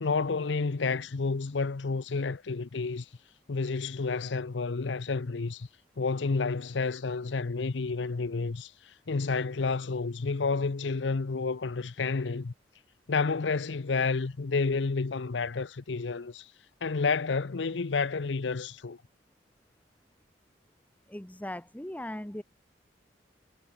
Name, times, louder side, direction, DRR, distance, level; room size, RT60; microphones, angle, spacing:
voice 1, 0.0-3.1 3.5-5.7 6.0-12.5 13.1-16.5 16.8-19.0, left 4 dB, 75° left, 0.7 m, -30 dB
voice 2, 21.1-22.4, left 1 dB, 10° left, 1.0 m, -38 dB
head